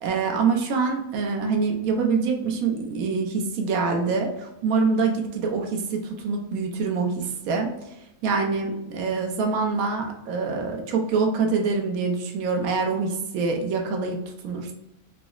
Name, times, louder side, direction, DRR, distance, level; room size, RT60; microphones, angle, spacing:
voice 1, 0.0-7.7 8.2-14.2 14.4-14.7, right 4 dB, 75° right, 2 dB, 1.0 m, -25 dB
3.9 x 2.0 x 2.3 m, 0.86 s
omnidirectional pair, 1.6 m